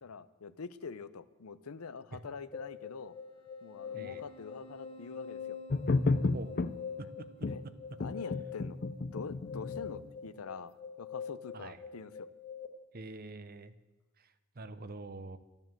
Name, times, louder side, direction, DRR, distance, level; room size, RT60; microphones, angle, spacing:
voice 1, 0.0-3.2 3.6-5.6 7.0-7.1 7.5-7.6 8.0-8.8 9.1-12.3, left 5 dB, 80° left, 15 dB, 0.7 m, -45 dB
sound 1, 2.5-12.7, left 7 dB, 25° left, 1.7 m, -45 dB
voice 2, 3.9-4.2 6.3-6.6 7.2-7.3 11.5-11.8 12.9-13.7 14.2-15.4, right 2 dB, 45° right, 13 dB, 0.8 m, -45 dB
sound 2, 5.7-6.7 7.4-7.6 8.0-10.1, left 3 dB, 45° left, 0.5 m, -31 dB
12.5 x 10.5 x 7.6 m, 1.1 s
head